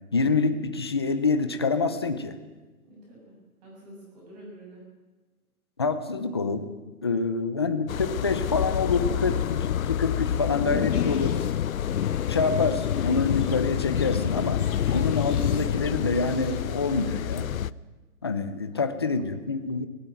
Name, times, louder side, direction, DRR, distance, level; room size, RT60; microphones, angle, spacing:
voice 1, 0.1-2.3 5.8-6.7 7.0-11.4 12.3-14.6 14.9-17.5 18.2-19.9, left 4 dB, 20° left, 9 dB, 0.6 m, -26 dB
voice 2, 2.8-3.3 3.6-4.8 18.7-19.2, right 1 dB, 30° right, -3 dB, 6.7 m, -48 dB
sound 1, 7.9-17.7, left 9 dB, 65° left, 0.7 m, -27 dB
sound 2, 10.9-16.8, left 6 dB, 85° left, 2.7 m, -39 dB
19.0 x 16.0 x 9.1 m, 1.2 s
hypercardioid pair, 170°, 44 cm